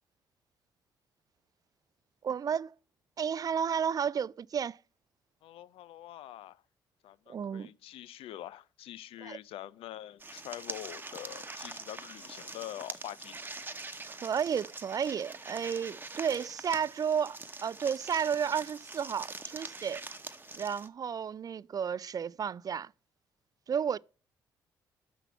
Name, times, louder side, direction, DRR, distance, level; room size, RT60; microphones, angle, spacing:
voice 1, 2.2-2.7 3.2-4.8 7.3-7.7 9.2-9.4 14.2-20.0 20.6-22.9 23.7-24.0, right 7 dB, 35° right, 0.3 m, -32 dB
voice 2, 5.4-6.6 7.0-13.4, left 13 dB, 65° left, 0.5 m, -45 dB
sound 1, 10.2-20.9, right 3 dB, 20° right, 1.0 m, -44 dB
6.8 x 6.0 x 5.6 m
hypercardioid pair, 50°, 10 cm